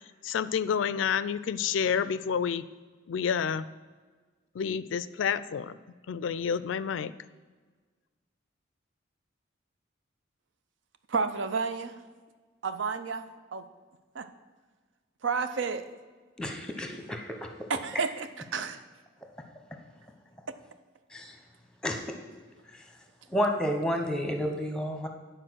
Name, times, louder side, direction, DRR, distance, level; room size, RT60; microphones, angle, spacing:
voice 1, 0.2-2.6 3.1-3.6 4.5-5.8 6.1-7.1, left 7 dB, 85° left, 16 dB, 0.4 m, -29 dB
voice 2, 11.1-12.0 12.6-13.7 14.1-14.3 15.2-15.9 17.7-18.8, right 5 dB, 80° right, 10 dB, 0.6 m, -31 dB
voice 3, 16.4-17.5 21.1-21.3 21.8-22.0 23.3-25.1, equal, 5° left, 4 dB, 0.8 m, -30 dB
10.0 x 4.5 x 6.2 m, 1.4 s
head